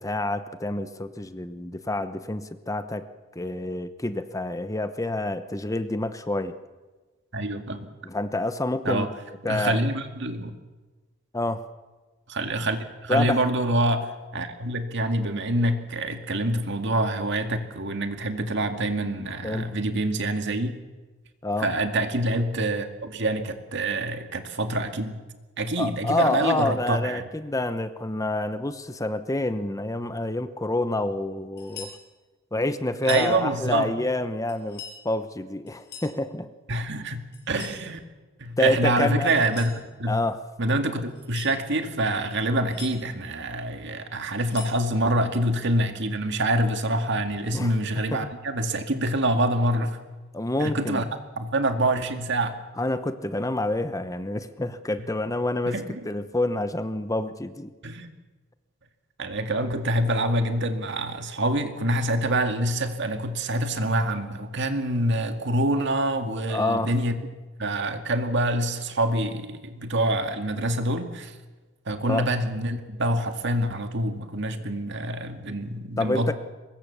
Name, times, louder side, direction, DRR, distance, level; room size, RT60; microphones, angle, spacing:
voice 1, 0.0-3.1 3.3-6.5 8.0-9.1 9.4-9.8 11.3-11.6 13.1-13.4 19.4-19.7 21.4-21.7 25.8-31.9 32.5-36.5 38.6-39.3 40.1-40.4 47.5-47.7 48.1-48.3 50.3-51.0 52.8-55.8 56.0-57.7 66.5-66.9 72.1-72.3 76.0-76.3, left 2 dB, 15° left, 11 dB, 0.9 m, -28 dB
voice 2, 7.3-7.9 8.8-9.1 9.5-10.5 12.3-20.7 21.6-25.2 25.6-27.2 33.0-33.9 36.7-38.0 38.4-39.7 40.0-40.2 40.6-50.0 50.6-51.0 51.4-52.5 55.7-55.9 57.8-58.2 59.2-67.2 67.6-71.3 71.9-76.3, right 1 dB, 60° right, 7 dB, 2.2 m, -26 dB
sound 1, 31.6-32.0 32.9-33.3 34.5-35.0 35.7-36.2 37.3-37.8 39.3-39.8 41.1-41.6 42.4-42.9 44.2-44.8, left 6 dB, 55° left, 6.7 m, -42 dB
23.5 x 21.0 x 7.0 m, 1.2 s
head